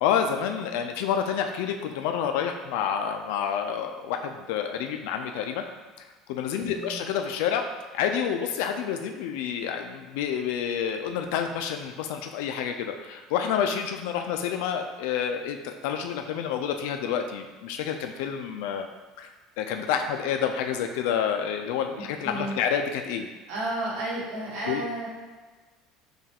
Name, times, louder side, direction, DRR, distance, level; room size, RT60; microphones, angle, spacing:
voice 1, 0.0-5.6 6.0-7.6 7.9-18.9 19.2-19.3 19.6-23.3 24.7-24.8, left 8 dB, 80° left, 5 dB, 0.3 m, -28 dB
voice 2, 6.5-6.9 22.2-22.6 23.5-25.1, right 1 dB, 75° right, -5 dB, 1.3 m, -32 dB
5.5 x 2.3 x 3.4 m, 1.3 s
cardioid pair, 170°, 0 cm